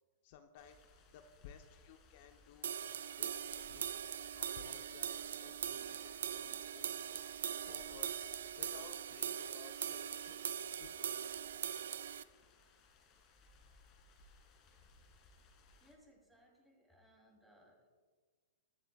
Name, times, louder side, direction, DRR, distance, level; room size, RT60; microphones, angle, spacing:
voice 1, 0.2-0.8 1.1-2.8 3.2-4.0 4.3-7.3 7.6-10.4 10.8-11.3, left 7 dB, 55° left, 6 dB, 0.7 m, -58 dB
sound 1, 0.6-16.0, left 3 dB, 35° left, 2.2 m, -66 dB
sound 2, 2.6-12.2, right 9 dB, 75° right, 0.4 m, -41 dB
voice 2, 15.8-17.9, equal, 5° right, -1 dB, 3.0 m, -66 dB
21.0 x 7.4 x 2.4 m, 1.5 s
hypercardioid pair, 120°, 0 cm